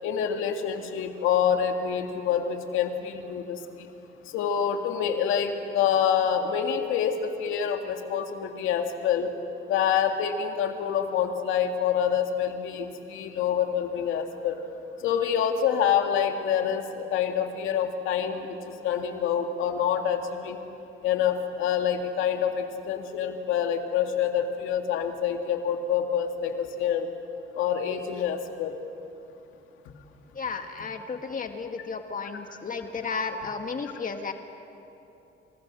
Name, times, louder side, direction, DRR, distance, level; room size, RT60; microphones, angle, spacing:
voice 1, 0.0-3.6 4.3-9.3 9.7-14.6 15.0-18.6 18.8-20.6 21.0-27.1 27.6-28.8, left 8 dB, 90° left, 4 dB, 2.3 m, -26 dB
voice 2, 30.3-34.3, left 5 dB, 45° left, 5 dB, 2.0 m, -33 dB
29.5 x 28.0 x 6.3 m, 2.8 s
cardioid pair, 90°, 20 cm